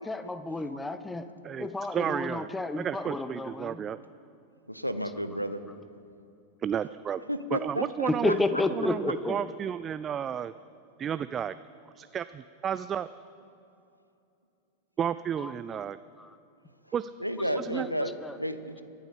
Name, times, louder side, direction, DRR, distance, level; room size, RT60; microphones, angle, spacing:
voice 1, 0.0-1.3 1.6-3.9 5.0-5.1 7.1-7.2 8.1-9.6 15.4-15.9 16.2-16.4 17.4-18.4, left 2 dB, 10° left, 11 dB, 0.7 m, -32 dB
voice 2, 1.4-2.5 2.8-4.0 6.6-7.2 7.5-8.4 8.7-10.5 11.0-11.6 12.0-13.1 15.0-16.0 16.9-17.1 17.6-17.9, right 8 dB, 25° right, 14 dB, 0.3 m, -32 dB
voice 3, 4.7-5.6 7.3-8.3 17.2-18.1 18.4-18.8, equal, 90° left, 11 dB, 0.7 m, -32 dB
24.0 x 9.2 x 5.1 m, 2.7 s
figure-of-eight pair, 90°, 0 cm